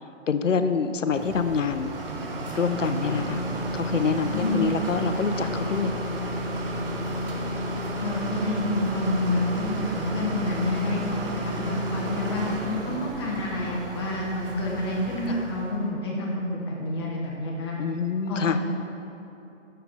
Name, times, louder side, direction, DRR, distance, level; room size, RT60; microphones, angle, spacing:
voice 1, 0.3-2.0 2.5-3.4 3.7-5.9 12.6-13.0 17.8-18.7, left 5 dB, 75° left, 10 dB, 0.5 m, -26 dB
sound 1, 1.1-15.8, right 1 dB, 45° right, 0.9 m, -31 dB
voice 2, 4.3-4.7 8.0-12.4 12.8-17.7 18.3-18.4, left 1 dB, 20° left, -3 dB, 0.9 m, -29 dB
6.7 x 6.5 x 4.0 m, 2.8 s
figure-of-eight pair, 140°, 38 cm